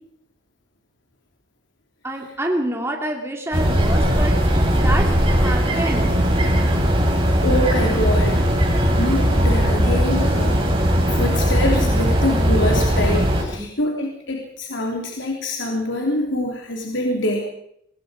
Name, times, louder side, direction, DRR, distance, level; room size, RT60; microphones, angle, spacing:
voice 1, 2.0-4.3 4.8-6.1 13.5-13.7, right 1 dB, 15° right, 1 dB, 2.8 m, -27 dB
sound 1, 3.5-13.4, equal, 30° right, 6.8 m, -18 dB
voice 2, 7.4-8.4 9.0-10.8 11.1-17.4, left 1 dB, 80° left, 0 dB, 3.4 m, -25 dB
25.0 x 20.5 x 5.2 m, 0.72 s
head